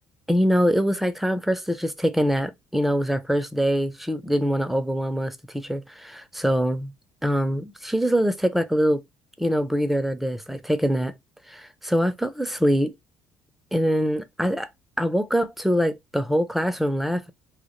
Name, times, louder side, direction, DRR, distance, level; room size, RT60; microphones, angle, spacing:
voice 1, 0.3-6.9 7.2-9.0 9.4-11.1 11.5-12.9 13.7-14.7 15.0-17.3, equal, 5° right, 0.4 m, -24 dB
2.1 x 2.1 x 2.9 m
hypercardioid pair, 60°, 6 cm